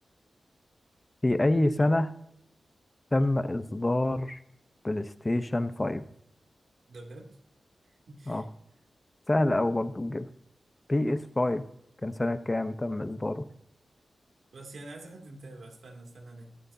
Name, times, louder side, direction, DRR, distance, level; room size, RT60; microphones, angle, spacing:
voice 1, 1.2-2.1 3.1-4.4 4.8-6.0 8.3-8.4 9.3-10.3 10.9-11.6 12.0-13.5, left 1 dB, 25° left, 11 dB, 0.9 m, -27 dB
voice 2, 6.9-7.3 7.8-8.5 14.5-16.6, right 2 dB, 80° right, 2 dB, 2.7 m, -47 dB
21.5 x 7.8 x 2.8 m, 0.75 s
cardioid pair, 60°, 0 cm